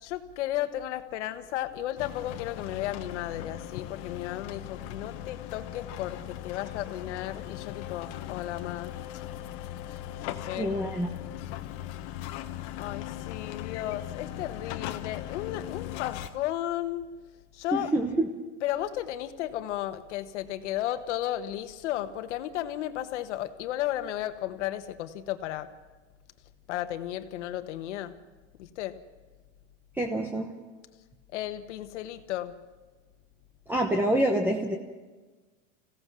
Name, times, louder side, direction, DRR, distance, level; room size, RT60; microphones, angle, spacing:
voice 1, 0.0-8.9 9.9-10.7 12.8-17.0 17.5-17.9 18.6-25.7 26.7-28.2 28.6-28.9 31.3-32.6, left 13 dB, 70° left, 10 dB, 1.5 m, -34 dB
sound 1, 2.0-16.3, left 12 dB, 45° left, 1.3 m, -39 dB
voice 2, 10.6-11.1 17.7-18.3 30.0-30.5 33.7-34.8, right 1 dB, 5° right, 3 dB, 1.1 m, -26 dB
26.0 x 16.5 x 6.3 m, 1.3 s
supercardioid pair, 150°, 36 cm